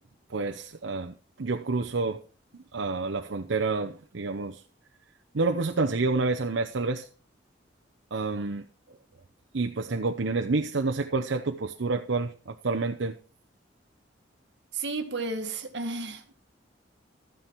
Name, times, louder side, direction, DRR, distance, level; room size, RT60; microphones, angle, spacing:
voice 1, 0.3-2.2 2.5-4.6 5.3-7.1 8.1-9.0 9.5-13.2, right 3 dB, 85° right, 0.8 m, -29 dB
voice 2, 14.7-16.3, right 3 dB, 70° right, 1.6 m, -33 dB
13.0 x 9.0 x 4.5 m
head